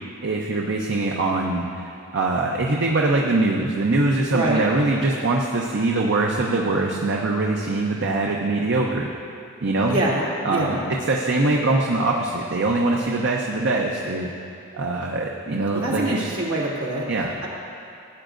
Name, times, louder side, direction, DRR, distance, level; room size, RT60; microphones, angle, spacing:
voice 1, 0.2-9.1 9.6-10.0 10.4-10.8 11.1-14.3 14.7-16.3 17.1-17.4, right 2 dB, 55° right, -1 dB, 0.7 m, -23 dB
voice 2, 4.3-4.6 9.9-10.2 10.5-10.8 15.7-17.1, right 1 dB, 85° right, -6 dB, 2.4 m, -24 dB
16.5 x 8.9 x 2.6 m, 2.6 s
head